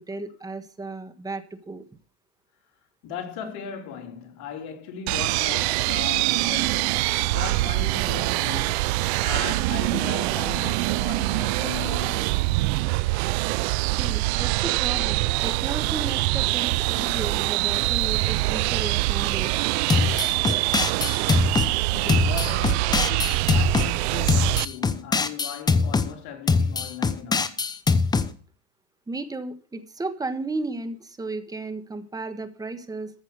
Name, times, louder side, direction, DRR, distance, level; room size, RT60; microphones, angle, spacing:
voice 1, 0.0-1.8 14.0-19.5 29.1-33.1, right 3 dB, 10° right, 1.3 m, -34 dB
voice 2, 3.0-8.9 9.2-12.4 21.9-27.5, left 7 dB, 55° left, 3.6 m, -37 dB
sound 1, 5.1-24.7, right 21 dB, 65° right, 0.5 m, -24 dB
sound 2, 19.9-21.7 22.1-23.9 24.3-26.1 26.5-28.3, left 4 dB, 10° left, 0.7 m, -22 dB
14.5 x 6.0 x 6.6 m
supercardioid pair, 125°, 35 cm